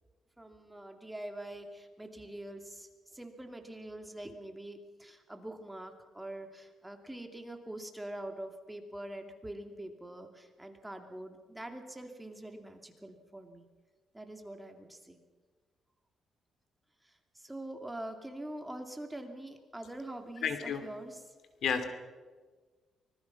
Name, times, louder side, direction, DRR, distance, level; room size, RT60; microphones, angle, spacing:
voice 1, 0.4-13.6 14.1-15.2 17.0-21.3, right 1 dB, 10° right, 5 dB, 2.6 m, -44 dB
voice 2, 20.4-20.8 21.6-21.9, left 7 dB, 65° left, 9 dB, 2.6 m, -31 dB
25.0 x 20.0 x 5.9 m, 1.4 s
cardioid pair, 110°, 0 cm